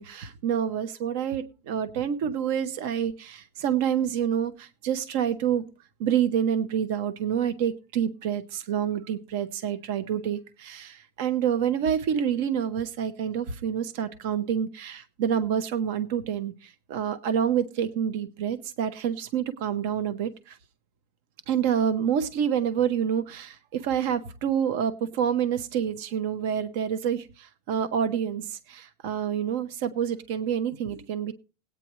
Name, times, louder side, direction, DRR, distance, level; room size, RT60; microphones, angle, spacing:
voice 1, 0.0-5.6 6.0-20.6 21.5-31.3, right 8 dB, 55° right, 12 dB, 0.8 m, -27 dB
19.5 x 9.0 x 3.1 m, 0.33 s
supercardioid pair, 180°, 0 cm